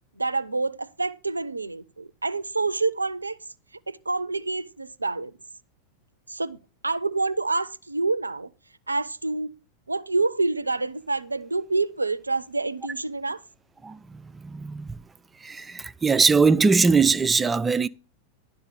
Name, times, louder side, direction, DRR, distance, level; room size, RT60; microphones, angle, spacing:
voice 1, 0.2-3.4 3.9-5.3 6.3-6.6 6.8-8.5 8.9-9.5 9.9-13.4, right 3 dB, 80° right, 0.4 m, -27 dB
voice 2, 13.8-15.0 15.4-17.9, right 4 dB, 15° right, 0.3 m, -21 dB
11.0 x 3.9 x 6.8 m
figure-of-eight pair, 90°, 0 cm